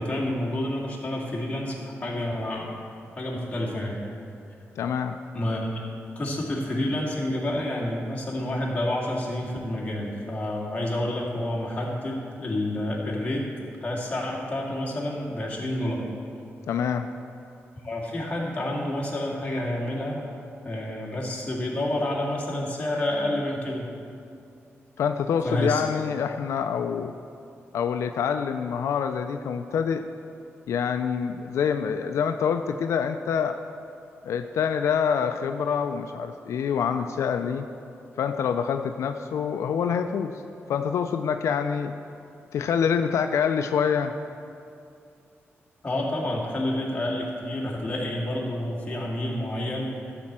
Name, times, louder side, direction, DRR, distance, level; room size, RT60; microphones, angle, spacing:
voice 1, 0.0-2.7 3.2-4.0 5.3-5.8 6.2-13.4 13.8-16.0 17.8-20.2 20.6-23.9 25.4-25.8 45.8-50.0, left 1 dB, 25° left, -3 dB, 2.2 m, -29 dB
voice 2, 4.8-5.2 16.7-17.1 25.0-27.1 27.7-30.0 30.7-33.6 34.2-37.7 38.2-40.3 40.7-41.9 42.5-44.1, left 7 dB, 90° left, 7 dB, 0.4 m, -26 dB
13.0 x 4.4 x 7.3 m, 2.5 s
wide cardioid pair, 110°, 5 cm